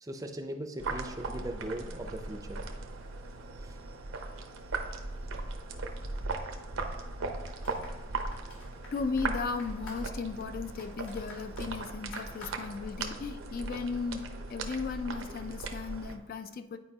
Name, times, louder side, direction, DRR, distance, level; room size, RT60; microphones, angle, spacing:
voice 1, 0.0-2.6 3.6-3.8, right 1 dB, 15° right, 6 dB, 0.5 m, -39 dB
sound 1, 0.8-16.2, right 3 dB, 90° right, 0.7 m, -38 dB
sound 2, 7.4-13.3 13.6-13.7, left 1 dB, 75° left, 2.0 m, -51 dB
voice 2, 8.9-16.8, left 4 dB, 45° left, 10 dB, 0.3 m, -36 dB
9.9 x 4.7 x 2.8 m, 1.1 s
head